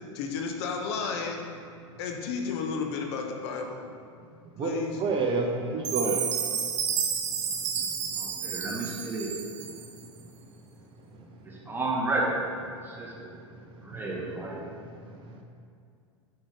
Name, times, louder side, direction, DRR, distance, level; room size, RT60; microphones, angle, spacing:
voice 1, 0.1-1.4 2.0-3.8 4.6-5.0, left 5 dB, 60° left, 2 dB, 0.9 m, -32 dB
voice 2, 4.6-6.5 6.8-8.0 8.3-8.5 9.6-10.5 11.1-11.8 12.7-15.4, right 3 dB, 35° right, 2 dB, 0.7 m, -34 dB
Chime, 5.8-10.1, right 7 dB, 70° right, 0.8 m, -31 dB
voice 3, 8.2-9.3 11.4-12.4 12.8-13.1 13.8-14.6, right 2 dB, 15° right, -4 dB, 1.6 m, -31 dB
7.0 x 5.6 x 3.7 m, 2.3 s
hypercardioid pair, 95°, 15 cm